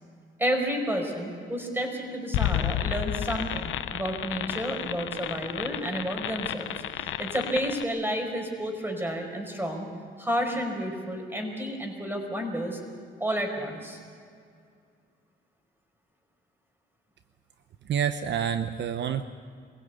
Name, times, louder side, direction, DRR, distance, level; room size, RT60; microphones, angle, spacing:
voice 1, 0.4-9.9 10.2-12.8 13.2-14.0, equal, 10° right, 3 dB, 5.2 m, -31 dB
sound 1, 2.3-7.8, left 11 dB, 80° left, 0.9 m, -31 dB
voice 2, 17.9-19.2, right 8 dB, 65° right, 9 dB, 0.9 m, -28 dB
23.5 x 16.5 x 8.3 m, 2.2 s
cardioid pair, 90°, 20 cm